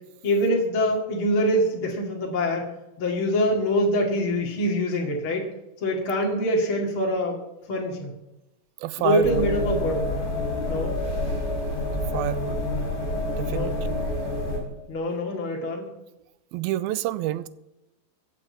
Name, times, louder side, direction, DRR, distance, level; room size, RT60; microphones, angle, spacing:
voice 1, 0.2-2.6 3.0-5.4 5.8-7.4 7.7-8.1 9.0-10.0 10.7-11.0 13.5-13.7 14.9-15.9, equal, 40° left, 2.7 m, -24 dB
voice 2, 8.8-9.4 12.1-12.6 13.3-14.1 16.5-17.5, right 14 dB, 80° right, 2.4 m, -28 dB
sound 1, 9.2-14.6, left 1 dB, 15° left, 4.6 m, -28 dB
15.0 x 7.4 x 8.4 m
omnidirectional pair, 4.5 m